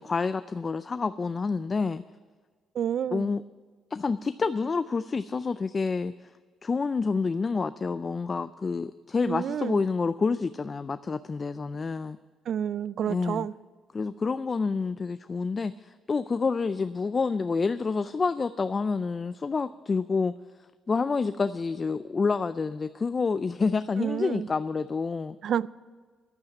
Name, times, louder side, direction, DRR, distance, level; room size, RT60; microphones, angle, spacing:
voice 1, 0.0-2.0 3.1-3.4 3.9-6.1 6.6-12.2 13.1-13.5 13.9-20.3 20.9-25.4, left 4 dB, 35° left, 0.4 m, -28 dB
voice 2, 2.7-3.3 9.3-9.8 12.5-13.5 24.0-24.5 25.4-25.7, right 9 dB, 65° right, 0.3 m, -29 dB
10.5 x 8.6 x 8.8 m
cardioid pair, 90°, 0 cm